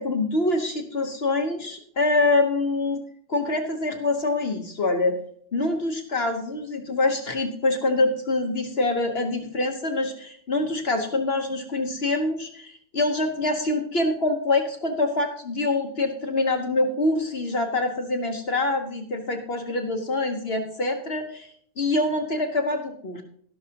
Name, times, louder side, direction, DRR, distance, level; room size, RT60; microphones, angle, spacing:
voice 1, 0.0-3.0 3.3-5.2 5.5-23.2, left 2 dB, 60° left, 5 dB, 0.6 m, -25 dB
12.5 x 11.5 x 2.8 m, 0.62 s
omnidirectional pair, 2.4 m